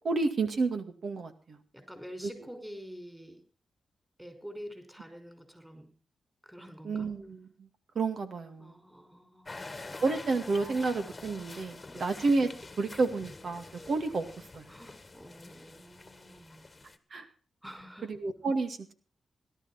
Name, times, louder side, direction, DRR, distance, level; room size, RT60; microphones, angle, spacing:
voice 1, 0.0-1.6 6.8-7.5 8.0-8.8 10.0-12.5 12.8-14.3 14.5-14.7 17.1-17.2 18.1-18.9, right 3 dB, 65° right, 8 dB, 2.1 m, -30 dB
voice 2, 1.7-3.4 4.2-5.9 6.4-7.1 8.6-9.8 11.9-12.1 14.7-16.7 17.6-18.1, equal, 5° right, 7 dB, 5.6 m, -47 dB
sound 1, 9.5-17.0, left 3 dB, 25° left, 1.6 m, -46 dB
17.5 x 12.5 x 4.3 m, 0.37 s
cardioid pair, 85°, 0 cm